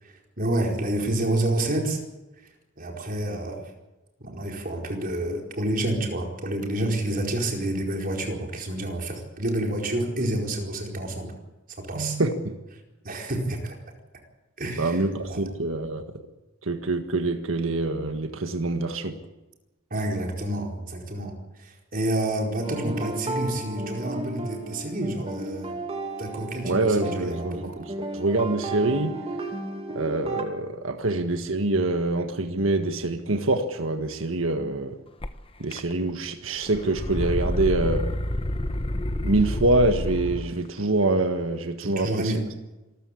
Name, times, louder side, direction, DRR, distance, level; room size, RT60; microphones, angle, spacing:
voice 1, 0.0-2.0 2.8-3.6 4.2-11.3 11.9-12.2 13.0-13.8 14.6-15.0 15.3-15.5 19.9-25.7 26.2-27.6 41.8-42.4, right 1 dB, 45° right, 1 dB, 4.7 m, -29 dB
voice 2, 11.9-12.5 14.8-16.0 16.6-19.2 26.6-29.2 29.9-35.0 35.6-38.0 39.2-42.3, right 2 dB, 75° right, 6 dB, 1.7 m, -25 dB
sound 1, 22.6-30.4, right 1 dB, 30° right, 2.4 m, -34 dB
sound 2, 35.2-35.3 35.7-36.3 36.6-40.5, left 1 dB, 25° left, 1.0 m, -28 dB
26.5 x 14.0 x 8.6 m, 1.1 s
head